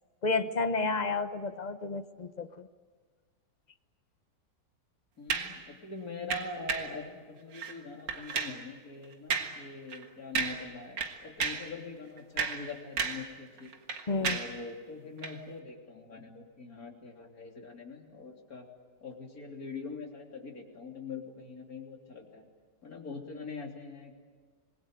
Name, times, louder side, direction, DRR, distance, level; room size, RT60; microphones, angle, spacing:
voice 1, 0.2-2.7 14.1-14.4, left 3 dB, 30° left, 10 dB, 0.8 m, -31 dB
voice 2, 5.2-13.7 14.2-18.6 19.0-22.4 22.8-24.2, left 3 dB, 55° left, 1 dB, 3.7 m, -43 dB
sound 1, 5.3-5.6 6.3-7.0 7.5-7.8 8.1-8.6 9.3-9.6 9.9-10.0 10.4-10.7 11.0-11.7 12.2-13.3 13.6-14.6 15.2-15.4, right 5 dB, 85° right, 2.4 m, -33 dB
26.5 x 21.0 x 9.2 m, 1.5 s
omnidirectional pair, 1.9 m